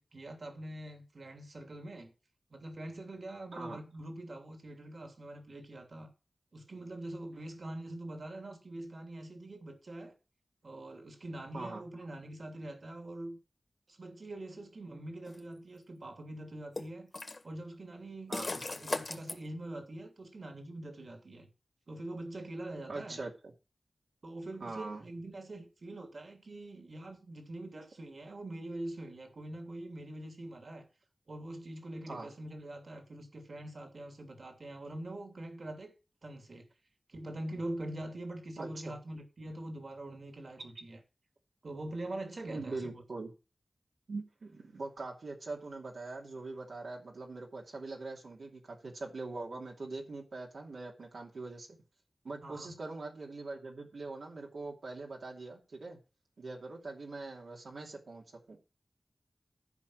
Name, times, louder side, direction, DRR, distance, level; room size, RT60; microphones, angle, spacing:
voice 1, 0.0-2.1 2.5-6.1 6.5-10.1 10.6-13.4 13.9-17.1 17.4-21.5 21.9-23.2 24.2-30.9 31.3-35.9 36.2-36.6 37.1-41.0 41.6-43.0 52.4-52.8, right 1 dB, 65° right, 2.8 m, -44 dB
sound 1, 15.2-15.4 16.8-17.4 18.3-19.4, left 2 dB, 50° left, 1.9 m, -37 dB
voice 2, 18.3-18.6 22.9-23.5 24.6-25.1 32.1-32.3 38.6-39.0 42.5-43.3 44.1-51.8 52.2-56.0 56.4-58.6, right 3 dB, 90° right, 2.6 m, -42 dB
14.0 x 5.2 x 6.3 m
wide cardioid pair, 65°, 0 cm